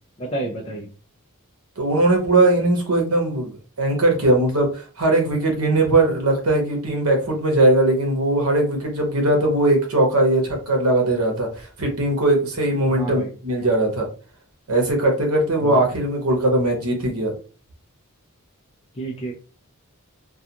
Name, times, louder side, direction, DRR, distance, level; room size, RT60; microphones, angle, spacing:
voice 1, 0.2-0.9 12.9-13.3 15.6-15.8 18.9-19.3, right 2 dB, 25° left, -3 dB, 0.4 m, -30 dB
voice 2, 1.8-14.1 14.7-17.3, right 2 dB, 80° right, 2 dB, 0.9 m, -20 dB
2.4 x 2.3 x 2.8 m, 0.37 s
head